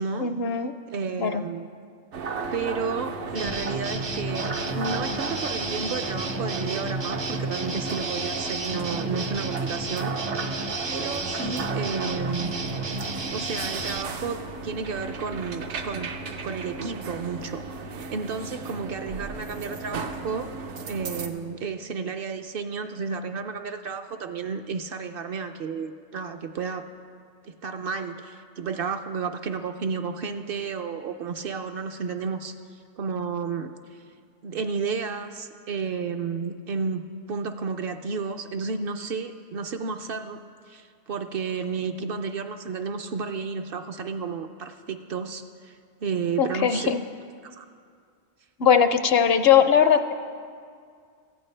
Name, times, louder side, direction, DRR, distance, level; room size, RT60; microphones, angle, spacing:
voice 1, 0.2-0.7 1.2-1.4 46.4-47.0 48.6-50.2, left 8 dB, 65° left, 10 dB, 0.7 m, -20 dB
voice 2, 0.9-1.7 2.5-4.5 4.7-10.2 10.9-12.5 13.3-16.1 16.4-20.5 20.9-26.9 27.4-32.6 33.0-33.7 34.4-47.0 47.4-47.7, right 5 dB, 60° right, 7 dB, 0.7 m, -32 dB
sound 1, 2.1-21.3, right 3 dB, 75° right, 1.1 m, -35 dB
sound 2, 3.3-14.0, right 3 dB, 35° right, 0.4 m, -32 dB
17.0 x 14.5 x 3.3 m, 2.2 s
omnidirectional pair, 1.2 m